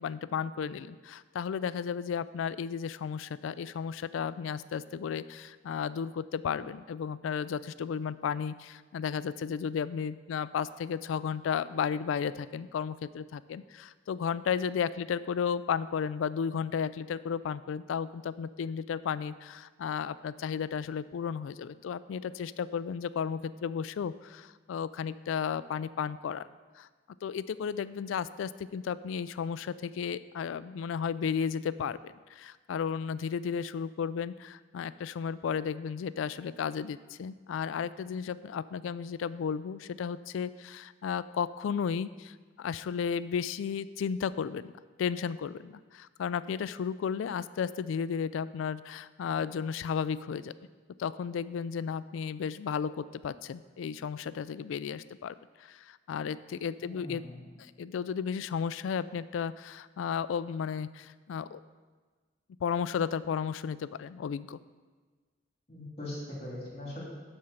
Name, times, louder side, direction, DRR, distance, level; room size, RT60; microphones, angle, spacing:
voice 1, 0.0-26.5 26.8-26.9 27.2-44.7 45.0-50.5 51.0-55.3 55.6-57.2 57.6-61.6 62.6-64.6, left 7 dB, 85° left, 16 dB, 0.3 m, -34 dB
voice 2, 56.8-57.5 65.7-67.0, left 1 dB, 30° left, -4 dB, 2.6 m, -41 dB
9.3 x 4.5 x 6.5 m, 1.4 s
head